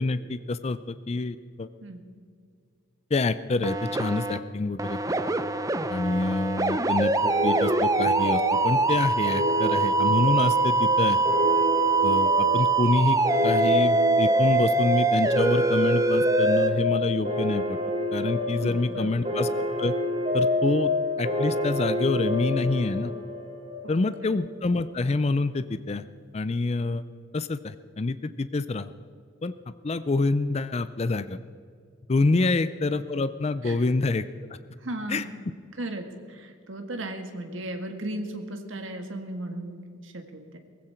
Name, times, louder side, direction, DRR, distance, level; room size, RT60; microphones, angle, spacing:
voice 1, 0.0-1.7 3.1-5.0 5.9-11.2 12.0-13.2 13.4-17.8 18.1-19.5 19.8-19.9 20.3-20.9 21.2-23.1 23.9-26.0 26.3-27.0 27.3-28.9 29.4-29.5 29.8-31.4 32.1-34.2 35.1-35.2, left 3 dB, 30° left, 13 dB, 0.4 m, -26 dB
sound 1, 3.6-4.4 4.8-16.7, right 3 dB, 15° right, 0.6 m, -24 dB
sound 2, 7.2-24.3, left 1 dB, 35° right, 3.0 m, -28 dB
voice 2, 18.6-19.3 23.8-24.4 32.3-32.5 33.6-33.9 34.8-35.4 35.8-40.6, right 1 dB, 75° right, 5 dB, 1.6 m, -36 dB
19.0 x 15.5 x 4.4 m, 2.2 s
head